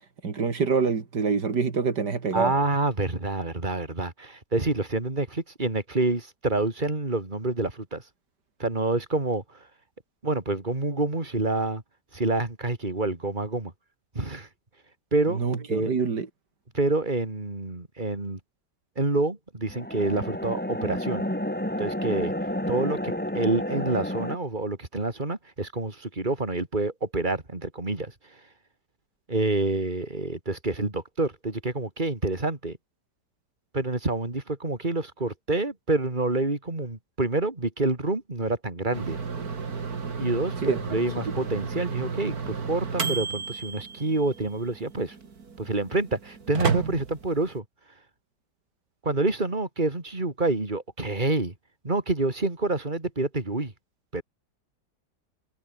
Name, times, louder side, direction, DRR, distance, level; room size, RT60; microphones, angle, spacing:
voice 1, 0.2-2.5 15.3-16.3 40.6-41.0 41.2-41.3, right 5 dB, 80° right, 3.1 m, -26 dB
voice 2, 2.3-8.0 8.6-9.4 10.2-11.8 12.1-13.7 14.2-14.5 15.1-15.4 15.7-15.9 16.7-18.4 19.0-21.3 21.8-22.3 22.7-28.1 29.3-32.8 33.7-39.2 40.2-45.2 45.6-47.6 49.0-51.5 51.8-53.7 54.1-54.2, right 2 dB, 25° right, 3.8 m, -27 dB
sound 1, 19.7-24.4, left 1 dB, 5° left, 2.3 m, -30 dB
sound 2, 38.9-47.6, right 5 dB, 65° right, 2.7 m, -32 dB
omnidirectional pair, 1.8 m